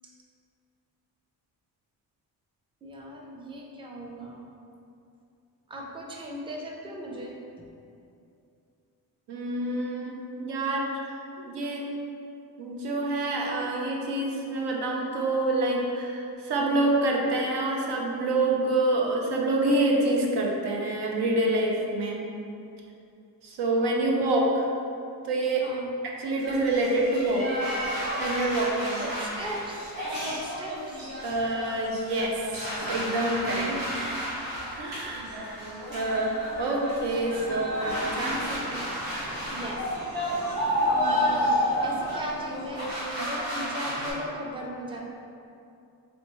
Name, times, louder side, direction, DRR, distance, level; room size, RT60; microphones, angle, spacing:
voice 1, 2.8-4.5 5.7-7.4 24.2-24.6 25.6-25.9 29.0-31.1 33.4-33.9 38.4-38.9 39.5-40.4 40.9-41.5 41.8-42.9 43.1-45.0, right 1 dB, 15° right, -1 dB, 0.4 m, -38 dB
voice 2, 9.3-10.9 11.4-11.8 12.6-22.2 23.4-24.7 25.2-25.6 26.0-27.4 28.2-29.0 31.2-32.5 32.9-33.7 34.0-34.1 34.8-35.6 35.9-38.5, right 2 dB, 80° right, -1 dB, 0.7 m, -27 dB
sound 1, 26.4-44.1, equal, 60° right, 1.4 m, -34 dB
sound 2, 37.1-42.7, left 1 dB, 35° right, 1.5 m, -29 dB
4.2 x 3.3 x 3.0 m, 2.6 s
cardioid pair, 100°, 41 cm